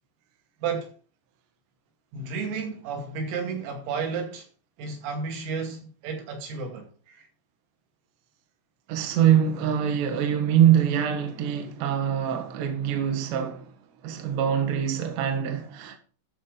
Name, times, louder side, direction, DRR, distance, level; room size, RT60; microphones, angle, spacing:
voice 1, 0.6-0.9 2.1-4.5 4.8-7.3, right 5 dB, 80° right, 4.9 m, -32 dB
voice 2, 8.9-13.7 14.0-16.0, right 9 dB, 65° right, 3.3 m, -24 dB
12.0 x 6.5 x 4.9 m
omnidirectional pair, 5.8 m